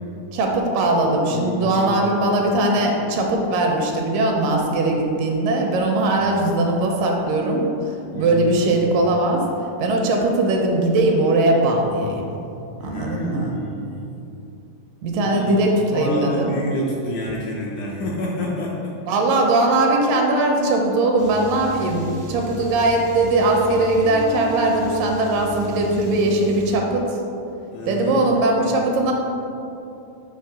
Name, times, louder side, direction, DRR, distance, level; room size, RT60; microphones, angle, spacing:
voice 1, 0.3-9.4 9.8-12.3 12.8-13.5 15.0-16.5 19.1-27.2 27.9-29.1, right 2 dB, 80° right, 1 dB, 2.2 m, -20 dB
voice 2, 1.3-2.3 6.0-6.2 8.1-8.9 12.8-13.9 15.2-18.9 27.7-28.5, left 1 dB, 80° left, -4 dB, 1.8 m, -29 dB
sound 1, 21.2-26.8, equal, 60° right, 0.7 m, -34 dB
7.6 x 3.1 x 5.6 m, 2.8 s
omnidirectional pair, 4.0 m